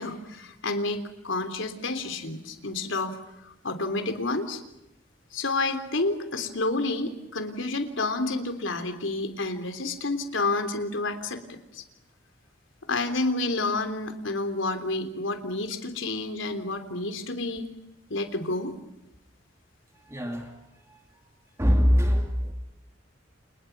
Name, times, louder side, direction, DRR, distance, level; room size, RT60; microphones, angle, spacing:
voice 1, 0.0-3.1 3.4-4.6 5.3-11.4 11.7-11.8 12.9-17.6 18.1-18.7, left 2 dB, 85° left, 8 dB, 3.3 m, -29 dB
voice 2, 20.1-20.6 20.9-21.0 21.6-22.5, equal, 15° right, 3 dB, 2.5 m, -23 dB
29.5 x 29.5 x 6.0 m, 0.89 s
head